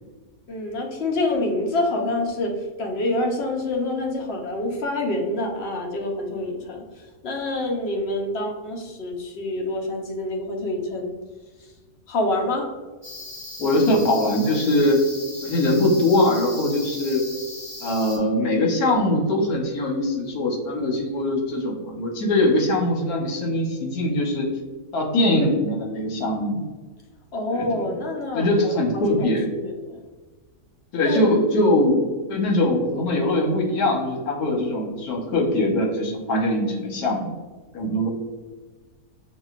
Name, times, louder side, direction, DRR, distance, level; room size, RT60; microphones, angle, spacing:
voice 1, 0.5-2.5 2.8-6.8 7.2-11.1 12.1-12.7 27.3-30.0 31.0-31.3 31.8-32.1, left 2 dB, 50° left, 0 dB, 0.9 m, -27 dB
sound 1, 13.0-18.2, left 1 dB, 20° left, 1.2 m, -38 dB
voice 2, 13.6-15.1 15.4-17.2 17.8-24.5 24.9-26.6 27.5-27.9 28.3-29.5 30.9-32.0 32.3-37.3 37.7-38.1, left 1 dB, 80° left, 0 dB, 1.4 m, -22 dB
6.5 x 2.3 x 2.4 m, 1.3 s
omnidirectional pair, 1.6 m